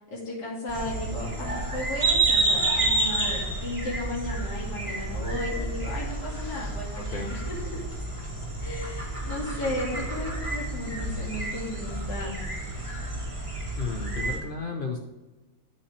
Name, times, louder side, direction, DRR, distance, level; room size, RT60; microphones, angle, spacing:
voice 1, 0.1-7.8 8.6-12.3, left 1 dB, 55° left, -6 dB, 2.7 m, -35 dB
sound 1, 0.7-14.4, right 2 dB, 15° right, 2.0 m, -29 dB
voice 2, 7.0-7.3 13.8-15.0, left 4 dB, 90° left, 2 dB, 0.4 m, -33 dB
12.5 x 5.7 x 3.3 m, 1.2 s
omnidirectional pair, 2.1 m